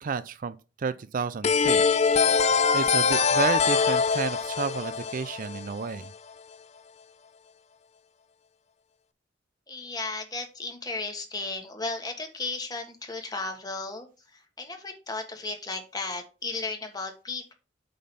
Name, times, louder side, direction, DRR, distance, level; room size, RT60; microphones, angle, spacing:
voice 1, 0.0-1.8 2.3-2.4 2.7-6.1, right 5 dB, 45° right, 0.4 m, -31 dB
sound 1, 1.4-6.1, left 5 dB, 35° left, 0.5 m, -23 dB
voice 2, 9.7-14.1 14.3-17.5, left 3 dB, 20° left, 1.5 m, -35 dB
8.4 x 4.0 x 5.6 m
head